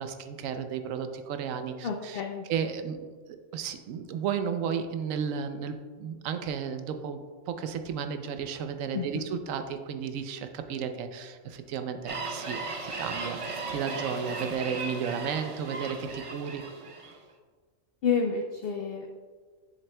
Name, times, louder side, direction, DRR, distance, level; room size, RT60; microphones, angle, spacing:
voice 1, 0.0-2.2 2.5-16.6, right 7 dB, 80° right, 8 dB, 1.0 m, -33 dB
voice 2, 1.8-2.5 8.9-9.2 18.0-19.1, left 6 dB, 60° left, 2 dB, 0.6 m, -29 dB
sound 1, 12.1-17.2, right 3 dB, 45° right, 0.4 m, -36 dB
7.3 x 6.8 x 2.2 m, 1.5 s
omnidirectional pair, 1.4 m